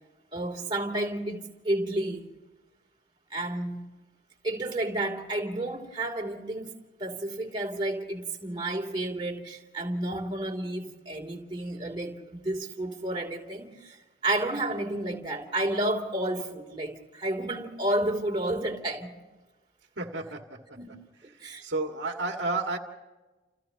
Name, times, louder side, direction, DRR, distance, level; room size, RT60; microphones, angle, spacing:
voice 1, 0.3-2.3 3.3-3.9 4.4-14.0 14.2-19.1 20.8-21.0 21.4-21.6, right 1 dB, 25° right, 3.1 m, -31 dB
voice 2, 20.0-20.4 21.6-22.8, right 3 dB, 75° right, 2.1 m, -30 dB
30.0 x 29.0 x 3.0 m
head